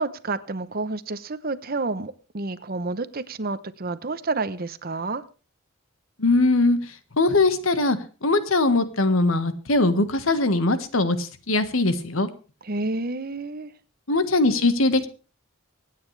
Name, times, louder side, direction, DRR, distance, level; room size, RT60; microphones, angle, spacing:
voice 1, 0.0-5.2 12.6-13.7, right 3 dB, 45° right, 14 dB, 0.9 m, -29 dB
voice 2, 6.2-6.8 7.2-12.3 14.1-15.1, left 2 dB, 85° left, 10 dB, 1.6 m, -21 dB
25.0 x 9.4 x 3.4 m, 0.35 s
head